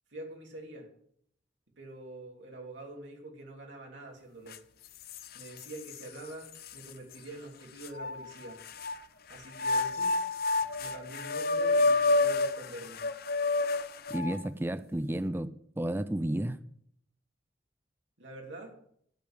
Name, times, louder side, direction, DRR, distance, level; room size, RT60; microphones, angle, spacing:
voice 1, 0.1-0.9 1.8-4.6 5.3-8.6 9.3-10.2 10.8-13.1 18.2-18.7, right 2 dB, 75° right, 0 dB, 3.1 m, -45 dB
sound 1, 4.5-4.6 5.1-6.0 6.6-6.7 7.8-9.0 9.5-14.5, left 3 dB, 55° left, 0.7 m, -29 dB
voice 2, 14.1-16.6, right 1 dB, 10° right, 12 dB, 0.5 m, -32 dB
14.0 x 5.4 x 8.9 m, 0.66 s
head